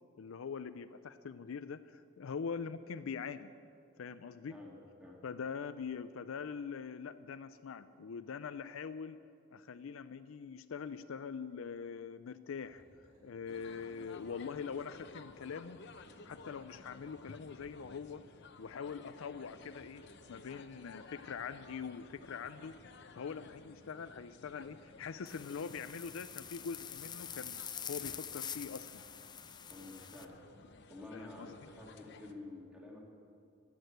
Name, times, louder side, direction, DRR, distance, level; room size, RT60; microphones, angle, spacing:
voice 1, 0.2-3.5 4.0-4.6 5.2-9.2 9.5-12.8 13.2-15.8 16.2-18.2 18.6-20.0 20.3-22.7 23.1-29.0 31.1-31.7, left 6 dB, 85° left, 11 dB, 0.4 m, -43 dB
sound 1, 12.5-15.0 15.4-18.0 19.3-28.4, equal, 35° right, 4.1 m, -70 dB
sound 2, 13.5-32.3, left 3 dB, 60° left, 0.8 m, -55 dB
sound 3, 25.3-30.3, left 8 dB, 20° left, 0.5 m, -45 dB
voice 2, 29.7-30.4 30.9-33.0, left 2 dB, 5° right, -3 dB, 2.4 m, -50 dB
12.5 x 11.0 x 8.0 m, 2.3 s
head